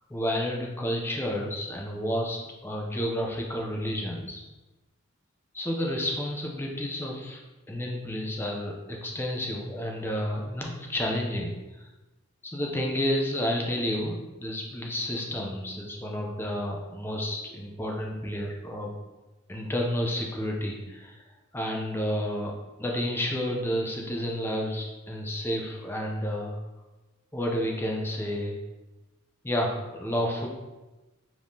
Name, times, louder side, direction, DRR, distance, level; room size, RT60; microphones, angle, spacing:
voice 1, 0.1-4.4 5.5-7.4 7.7-11.9 12.4-18.9 19.5-21.3 21.5-22.5 22.8-26.6 27.3-28.6 29.4-30.5, equal, 10° left, 0 dB, 0.5 m, -30 dB
4.9 x 3.6 x 2.7 m, 1.1 s
head